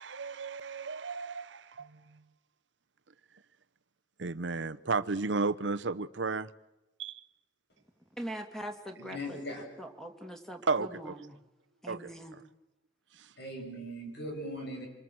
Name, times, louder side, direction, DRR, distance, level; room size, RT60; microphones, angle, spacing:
voice 1, 0.0-2.2 4.2-6.5 7.0-7.2 10.6-11.3 11.9-12.4 13.1-13.3, right 4 dB, 80° right, 0.9 m, -34 dB
voice 2, 8.2-9.2 9.8-11.1 11.8-12.3, right 1 dB, 5° left, 2.5 m, -41 dB
voice 3, 8.8-9.6 13.4-14.9, equal, 65° left, 7.8 m, -40 dB
27.0 x 23.5 x 7.8 m
head